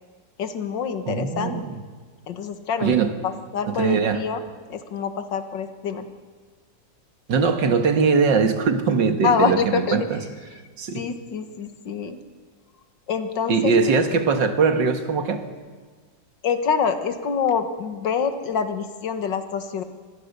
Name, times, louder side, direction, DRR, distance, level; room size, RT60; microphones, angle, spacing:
voice 1, 0.4-1.6 2.3-4.4 4.7-6.1 9.2-10.1 10.9-12.2 13.1-13.7 16.4-19.8, left 6 dB, 90° left, 9 dB, 2.1 m, -26 dB
voice 2, 1.1-1.8 2.8-3.1 3.7-4.2 7.3-10.2 10.8-11.0 13.5-15.4, right 5 dB, 85° right, 8 dB, 2.3 m, -21 dB
25.5 x 20.0 x 6.7 m, 1.5 s
omnidirectional pair, 1.9 m